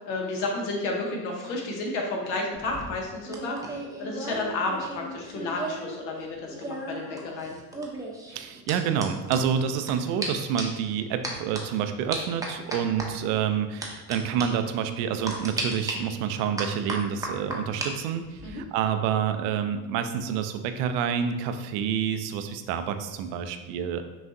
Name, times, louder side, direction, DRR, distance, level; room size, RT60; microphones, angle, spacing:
voice 1, 0.0-7.6 18.4-18.6, left 2 dB, 80° left, 0 dB, 1.2 m, -31 dB
sound 1, 2.5-5.9 6.2-9.9 10.2-10.3 10.6-10.8 11.2-11.6 12.1-13.1 13.8-14.1 14.4-14.5 15.3-15.9 16.6-17.9 18.2-18.6, right 2 dB, 5° right, 0.6 m, -35 dB
voice 2, 8.3-24.0, right 8 dB, 70° right, 8 dB, 0.6 m, -28 dB
5.9 x 2.4 x 2.6 m, 1.2 s
hypercardioid pair, 85°, 50 cm